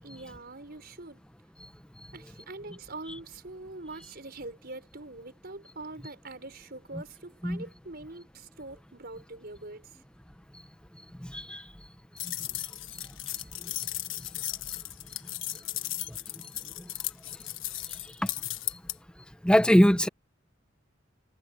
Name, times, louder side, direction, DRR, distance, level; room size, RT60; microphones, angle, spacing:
voice 1, 0.0-1.2 2.1-10.0, right 2 dB, 50° right, 5.5 m, -43 dB
sound 1, 12.2-18.9, left 15 dB, 70° left, 1.3 m, -36 dB
voice 2, 19.4-20.1, equal, 5° left, 0.9 m, -21 dB
head